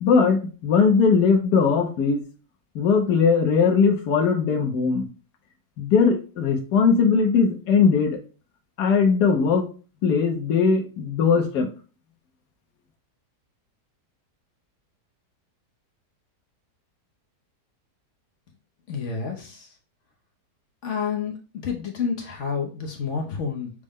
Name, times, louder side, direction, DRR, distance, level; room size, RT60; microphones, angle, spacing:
voice 1, 0.0-2.2 2.7-5.1 5.8-8.2 8.8-9.7 10.0-11.7, left 5 dB, 75° left, 2 dB, 1.3 m, -20 dB
voice 2, 18.9-19.7 20.8-21.4 21.6-23.7, left 6 dB, 60° left, 1 dB, 0.9 m, -29 dB
6.3 x 2.2 x 3.5 m, 0.36 s
omnidirectional pair, 1.7 m